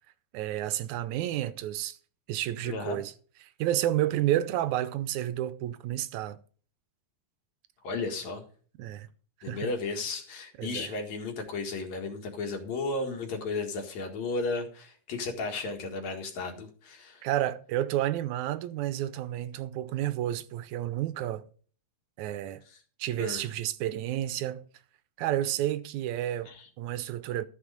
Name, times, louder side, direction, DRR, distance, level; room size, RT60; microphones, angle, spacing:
voice 1, 0.3-2.0 2.3-3.1 3.6-6.4 8.8-9.1 9.5-9.7 10.6-10.9 17.2-21.5 22.2-22.6 23.0-24.6 25.2-26.5 26.8-27.4, right 13 dB, 85° right, 2.0 m, -30 dB
voice 2, 2.6-3.0 7.8-8.4 9.4-17.2 22.7-22.8 23.2-23.4 26.5-26.7, left 3 dB, 70° left, 3.2 m, -34 dB
13.0 x 6.3 x 5.1 m
omnidirectional pair, 3.3 m